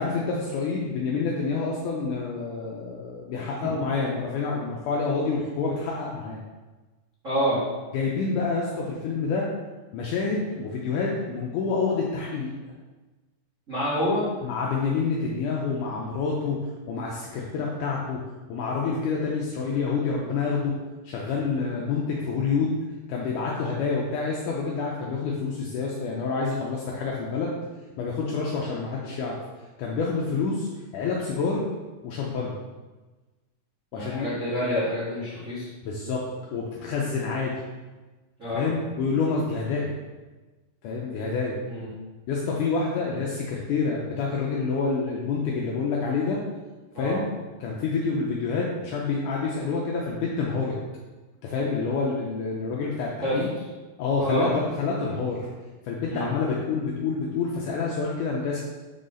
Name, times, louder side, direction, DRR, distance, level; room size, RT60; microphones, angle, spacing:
voice 1, 0.0-6.4 7.9-9.5 9.9-12.5 14.4-16.6 16.9-18.2 18.5-20.7 21.0-22.7 23.1-27.5 28.0-29.4 29.8-30.7 30.9-31.6 32.0-32.6 33.9-34.4 35.9-36.2 36.5-37.6 38.6-39.9 40.8-41.6 42.3-46.4 47.0-47.2 47.6-50.8 51.4-53.5 54.0-55.5 55.8-58.6, left 4 dB, 80° left, -3 dB, 1.9 m, -27 dB
voice 2, 7.2-7.6 13.7-14.3 33.9-35.7 38.4-38.7 41.7-41.9 46.9-47.2 53.2-53.4 54.2-54.5 56.0-56.3, equal, 70° right, -10 dB, 0.7 m, -27 dB
6.3 x 4.0 x 3.8 m, 1.2 s
omnidirectional pair, 4.2 m